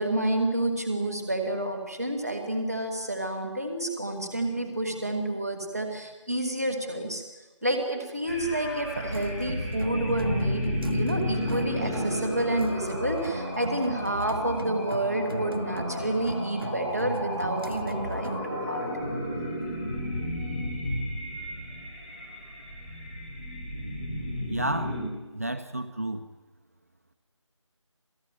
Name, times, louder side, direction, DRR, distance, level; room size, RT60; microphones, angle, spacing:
voice 1, 0.0-7.2 7.6-18.9, right 1 dB, ahead, -14 dB, 1.1 m, -29 dB
sound 1, 8.3-25.0, left 1 dB, 15° left, 5.3 m, -33 dB
sound 2, 8.9-18.4, right 2 dB, 45° right, 1.4 m, -37 dB
voice 2, 24.5-25.0 25.3-26.2, right 1 dB, 30° right, 8 dB, 0.9 m, -31 dB
27.5 x 18.0 x 9.5 m, 1.2 s
figure-of-eight pair, 175°, 16 cm